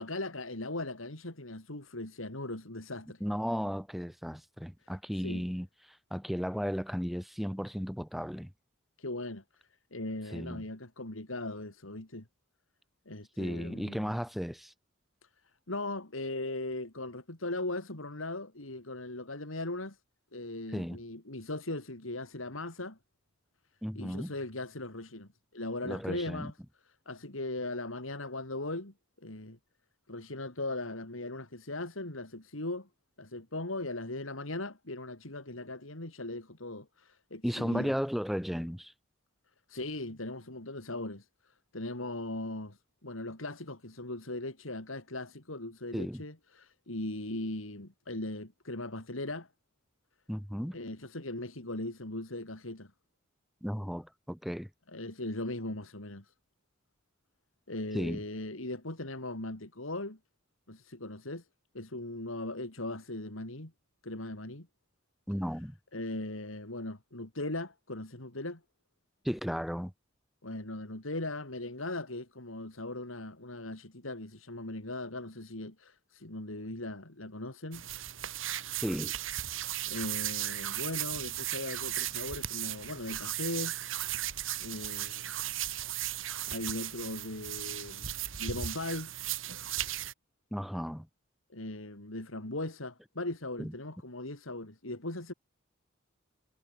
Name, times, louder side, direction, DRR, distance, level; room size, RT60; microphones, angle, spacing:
voice 1, 0.0-3.2 5.2-5.4 9.0-9.4 9.9-12.3 13.1-14.2 15.7-20.0 20.3-23.0 24.0-26.5 27.1-28.9 29.2-29.6 30.1-32.9 33.2-37.9 39.7-49.5 50.7-52.9 54.9-56.3 57.7-60.2 60.7-61.4 61.7-63.7 64.0-64.7 65.9-68.6 70.4-77.8 79.9-83.7 84.6-85.2 86.5-88.1 88.4-89.1 91.5-95.3, left 2 dB, 85° left, 3.7 m, -39 dB
voice 2, 3.2-8.5 10.3-10.6 13.4-14.7 20.7-21.0 23.8-24.3 25.8-26.5 37.4-38.9 45.9-46.2 50.3-50.8 53.6-54.7 57.9-58.2 65.3-65.8 69.2-69.9 78.8-79.1 90.5-91.1 93.6-93.7, equal, ahead, 1.8 m, -35 dB
sound 1, 77.7-90.1, right 12 dB, 75° right, 2.6 m, -36 dB
head